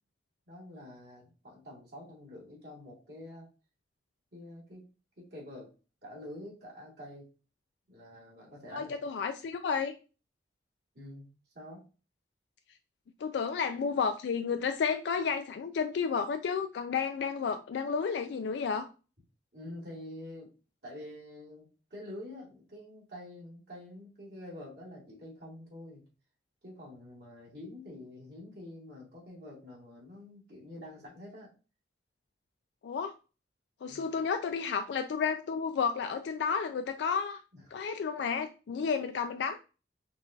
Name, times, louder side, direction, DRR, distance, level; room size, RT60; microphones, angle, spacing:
voice 1, 0.5-3.5 4.3-4.8 5.2-5.7 6.0-7.3 7.9-9.0 10.9-11.3 11.5-11.8 19.5-20.5 20.8-26.0 26.6-31.5 33.9-34.2 37.5-37.8, left 1 dB, 65° right, 2.1 m, -47 dB
voice 2, 8.7-9.9 13.2-18.9 32.8-33.1 33.8-37.4 37.7-39.6, left 6 dB, 70° left, 0.3 m, -31 dB
5.4 x 2.4 x 2.6 m
head